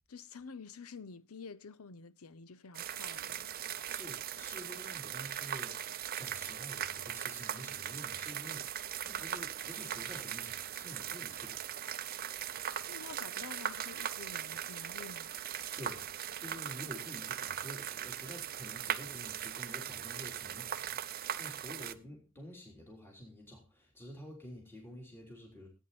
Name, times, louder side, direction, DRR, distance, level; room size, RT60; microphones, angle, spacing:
voice 1, 0.1-3.5 12.9-15.4, left 5 dB, 80° left, 0.7 m, -49 dB
sound 1, 2.7-21.9, right 10 dB, 45° right, 0.6 m, -39 dB
voice 2, 3.9-11.6 15.8-16.1 16.4-25.7, left 1 dB, 10° left, 3.5 m, -49 dB
16.5 x 9.2 x 4.2 m
head